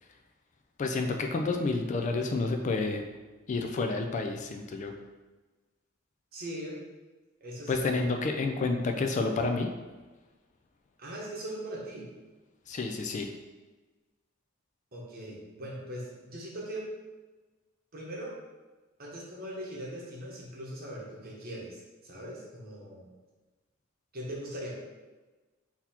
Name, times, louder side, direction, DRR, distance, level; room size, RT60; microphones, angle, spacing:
voice 1, 0.8-3.0 3.5-4.9 7.7-9.7 12.7-13.3, left 3 dB, 35° left, 5 dB, 0.3 m, -29 dB
voice 2, 6.3-6.8 7.4-7.9 11.0-12.1 14.9-16.9 17.9-18.4 19.0-23.1 24.1-24.8, right 1 dB, 45° right, -4 dB, 1.1 m, -40 dB
4.0 x 2.9 x 4.2 m, 1.2 s
head